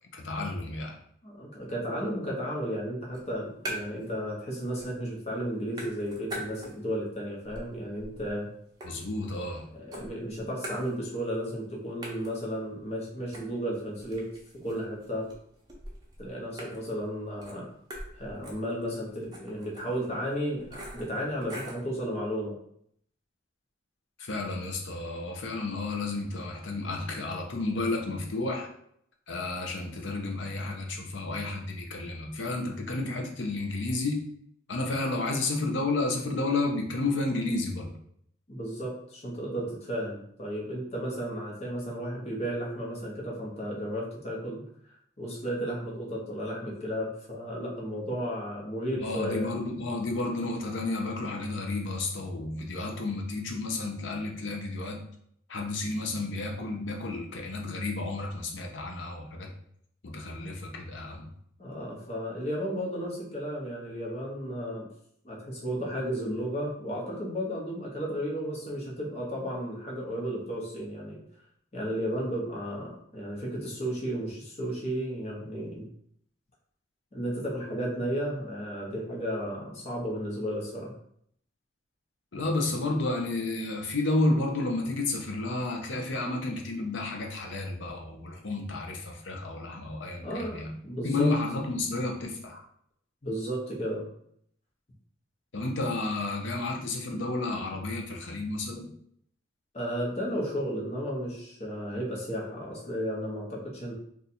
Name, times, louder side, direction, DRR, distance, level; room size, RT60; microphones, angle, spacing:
voice 1, 0.1-1.0 8.8-9.7 24.2-28.7 29.3-34.2 34.7-38.0 49.0-55.0 55.5-59.5 60.0-61.3 82.3-90.7 91.0-92.6 95.5-98.9, left 2 dB, 80° left, 2 dB, 0.7 m, -31 dB
voice 2, 1.2-8.5 9.8-14.3 14.5-15.3 16.2-17.7 18.1-22.5 38.5-49.5 61.6-64.9 65.2-71.2 71.7-75.9 77.1-80.9 90.2-91.3 93.2-94.1 99.7-103.9, equal, 35° left, -3 dB, 0.9 m, -33 dB
sound 1, 3.1-4.1 4.4-5.1 5.4-7.0 7.4-9.6 9.9-11.4 11.6-11.7 12.0-21.9, equal, 20° right, 0.7 m, -43 dB
2.7 x 2.4 x 4.1 m, 0.68 s
head